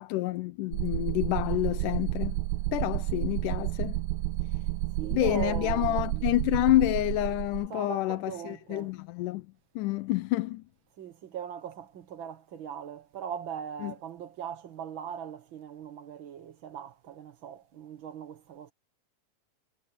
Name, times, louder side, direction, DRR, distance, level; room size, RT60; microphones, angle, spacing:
voice 1, 0.0-2.4 2.7-4.0 5.1-9.5 9.8-10.6 13.8-13.9, left 17 dB, 90° left, 2.2 m, -28 dB
sound 1, 0.7-7.7, right 17 dB, 80° right, 1.7 m, -31 dB
voice 2, 5.0-6.3 7.7-8.9 11.0-18.7, right 9 dB, 50° right, 1.6 m, -40 dB
omnidirectional pair, 3.6 m